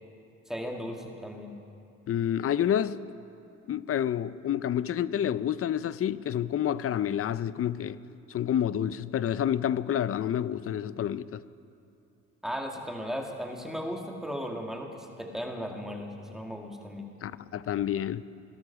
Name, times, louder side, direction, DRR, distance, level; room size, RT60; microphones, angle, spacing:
voice 1, 0.5-1.5 12.4-17.1, equal, ahead, 2.1 m, -36 dB
voice 2, 2.1-3.0 3.7-8.0 8.3-11.4 17.2-18.2, left 10 dB, 50° left, 0.5 m, -29 dB
17.5 x 13.0 x 5.9 m
cardioid pair, 90°, 30 cm